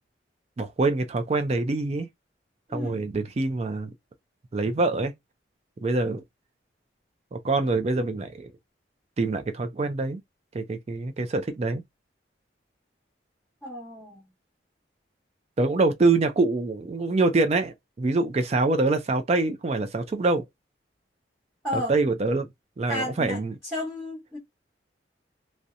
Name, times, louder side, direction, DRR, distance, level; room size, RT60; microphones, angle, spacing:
voice 1, 0.6-2.1 2.7-3.9 4.5-5.1 5.8-6.2 7.3-8.5 9.2-10.2 10.5-11.8 15.6-20.4 21.7-22.5 22.8-23.5, right 3 dB, 35° right, 0.3 m, -25 dB
voice 2, 2.7-3.1 13.6-14.2 21.6-21.9 22.9-23.4 23.7-24.4, left 1 dB, 5° right, 1.1 m, -32 dB
2.7 x 2.0 x 2.5 m
head